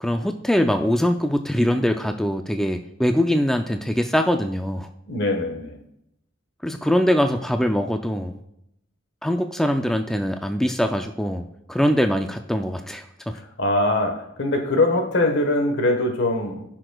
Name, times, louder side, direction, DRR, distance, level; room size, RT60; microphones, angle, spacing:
voice 1, 0.0-4.9 6.6-8.4 9.2-11.4 11.7-13.0, equal, ahead, 0.3 m, -22 dB
voice 2, 5.1-5.8 13.3-16.6, left 2 dB, 65° left, 1.2 m, -22 dB
15.0 x 5.9 x 2.3 m
head